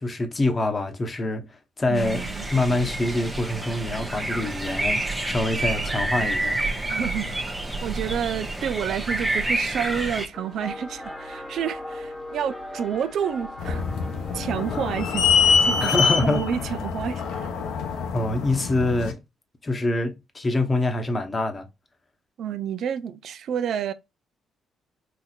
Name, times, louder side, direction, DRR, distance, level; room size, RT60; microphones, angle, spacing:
voice 1, 0.0-1.4 1.8-2.2 2.5-6.6 15.8-16.4 18.1-19.2 19.6-21.7, left 2 dB, 30° left, 0.9 m, -25 dB
voice 2, 1.9-2.5 6.9-7.5 7.8-13.8 14.3-17.5 22.4-23.9, right 8 dB, 70° right, 0.4 m, -29 dB
sound 1, 2.0-10.3, right 2 dB, 15° right, 0.8 m, -28 dB
sound 2, 10.3-16.1, left 1 dB, 10° left, 1.2 m, -39 dB
sound 3, 13.6-19.1, left 5 dB, 90° left, 0.8 m, -24 dB
4.2 x 2.8 x 2.4 m
cardioid pair, 90°, 0 cm